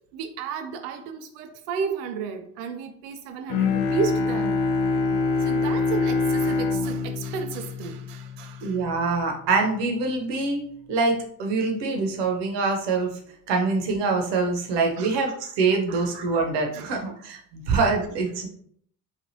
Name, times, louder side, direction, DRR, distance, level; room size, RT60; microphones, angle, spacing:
voice 1, 0.1-4.6 5.4-8.8 15.0-15.2 15.9-16.2 16.7-17.0, right 6 dB, 80° right, 7 dB, 0.6 m, -33 dB
Bowed string instrument, 3.5-8.6, left 4 dB, 65° left, 0.5 m, -25 dB
voice 2, 8.6-13.1 13.5-18.5, right 4 dB, 65° right, 2 dB, 0.9 m, -25 dB
3.3 x 2.4 x 2.6 m, 0.63 s
hypercardioid pair, 60°, 46 cm